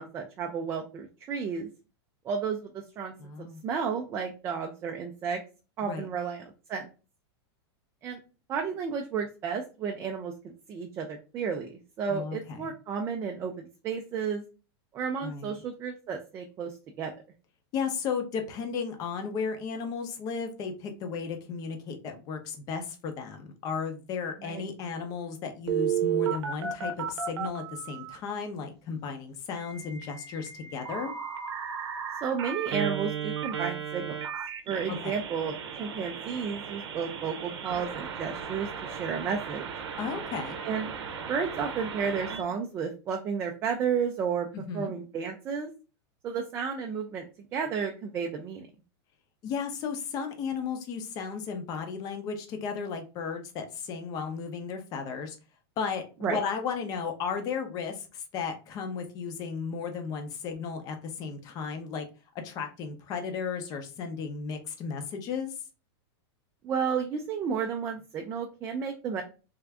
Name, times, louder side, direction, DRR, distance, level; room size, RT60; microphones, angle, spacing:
voice 1, 0.0-1.7 2.3-3.1 3.4-5.4 5.8-6.9 8.0-8.2 8.5-14.4 14.9-17.1 24.4-24.6 32.2-34.2 34.7-39.7 40.6-40.9 41.3-44.5 44.7-45.7 46.2-47.2 47.5-48.7 56.2-56.4 66.6-69.2, right 6 dB, 20° right, 0.3 m, -32 dB
voice 2, 3.2-3.6 5.8-6.1 12.1-12.7 15.2-15.6 17.7-31.2 34.9-35.1 40.0-40.6 44.5-44.9 49.4-55.4 55.8-62.1 62.4-65.5, left 6 dB, 25° left, 0.6 m, -34 dB
Telephone, 25.7-28.2 29.6-42.4, right 8 dB, 85° right, 0.7 m, -34 dB
3.4 x 2.5 x 3.3 m
supercardioid pair, 165°, 14 cm